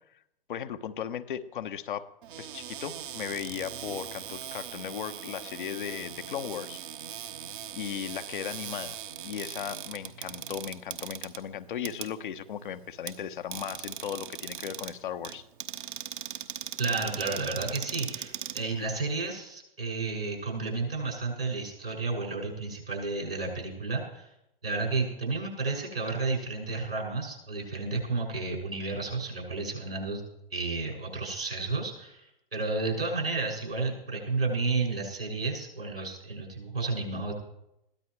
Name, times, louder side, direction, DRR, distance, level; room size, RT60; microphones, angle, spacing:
voice 1, 0.5-2.1 2.4-6.8 7.7-15.4, left 9 dB, 60° left, 9 dB, 1.1 m, -37 dB
Cupboard open or close, 2.2-19.3, right 10 dB, 60° right, 1.2 m, -40 dB
voice 2, 16.8-24.3 24.6-30.2 30.5-37.3, right 3 dB, 80° right, -2 dB, 6.8 m, -32 dB
22.0 x 16.0 x 3.2 m, 0.84 s
figure-of-eight pair, 105°, 29 cm